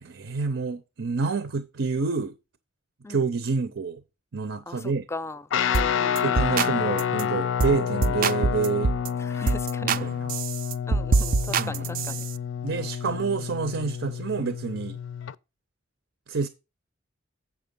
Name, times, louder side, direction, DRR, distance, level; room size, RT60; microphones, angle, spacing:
voice 1, 0.0-2.3 3.1-4.0 4.3-5.0 6.2-8.9 9.8-10.3 11.5-12.1 12.6-15.0 16.3-16.5, right 4 dB, 80° right, 0.7 m, -28 dB
voice 2, 4.7-6.5 9.2-10.1 10.9-12.3 13.0-13.5, left 2 dB, 15° left, 0.4 m, -39 dB
Guitar, 5.5-15.3, left 8 dB, 80° left, 0.4 m, -29 dB
sound 1, 5.7-5.9 6.2-6.7 7.0-7.2 7.6-7.8 8.0-9.1 9.5-10.0 10.3-12.3, right 4 dB, 50° right, 0.4 m, -25 dB
7.5 x 6.2 x 5.3 m
head